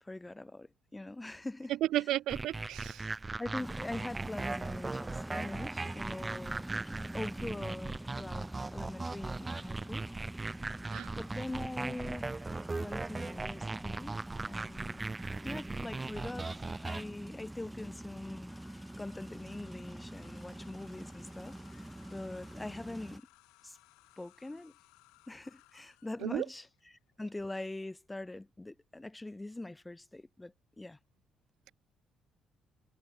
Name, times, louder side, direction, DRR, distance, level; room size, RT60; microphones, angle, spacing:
voice 1, 0.0-1.8 3.4-6.7 7.1-10.1 11.1-12.4 12.8-15.1 15.4-16.5 16.8-18.5 19.0-23.3 23.6-23.8 24.2-24.7 25.3-26.7 27.2-31.0, left 2 dB, 15° left, 1.8 m, -43 dB
voice 2, 1.8-3.1 10.9-11.1 26.2-26.5, right 14 dB, 75° right, 0.6 m, -33 dB
sound 1, 2.3-17.0, right 3 dB, 25° right, 1.6 m, -39 dB
sound 2, 3.6-23.2, right 1 dB, 10° right, 4.9 m, -45 dB
sound 3, 18.5-27.4, left 23 dB, 80° left, 6.8 m, -64 dB
hypercardioid pair, 55°, 0 cm